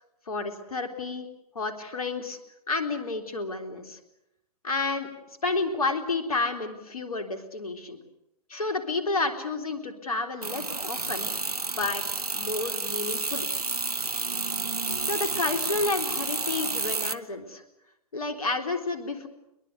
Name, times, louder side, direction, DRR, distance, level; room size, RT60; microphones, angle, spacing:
voice 1, 0.3-1.3 1.5-2.4 2.7-4.0 4.6-5.1 5.4-8.0 8.5-11.3 11.7-13.5 15.1-17.6 18.1-19.3, left 3 dB, 70° left, 6 dB, 3.8 m, -30 dB
sound 1, 10.4-17.2, right 3 dB, 85° right, 1.0 m, -30 dB
22.5 x 22.0 x 8.3 m, 0.83 s
figure-of-eight pair, 115°, 19 cm